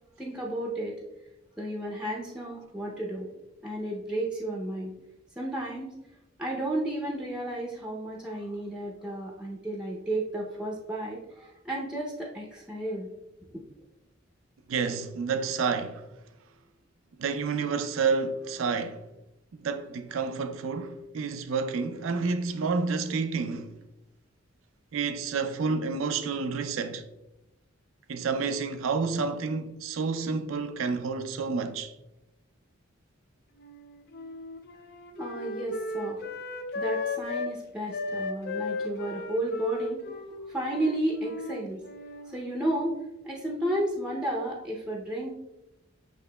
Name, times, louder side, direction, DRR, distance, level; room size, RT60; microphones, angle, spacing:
voice 1, 0.2-0.9 1.6-3.3 3.6-4.9 5.4-5.9 6.4-13.1 35.2-36.2 36.7-40.0 40.5-41.8 42.3-43.0 43.2-45.4, right 1 dB, 5° right, 0.6 m, -32 dB
voice 2, 14.7-16.0 17.2-19.0 19.6-23.7 24.9-27.0 28.1-31.9, right 5 dB, 85° right, 0.4 m, -29 dB
Wind instrument woodwind instrument, 33.6-37.5 37.9-42.3, left 3 dB, 50° left, 0.4 m, -35 dB
8.4 x 2.8 x 2.2 m
head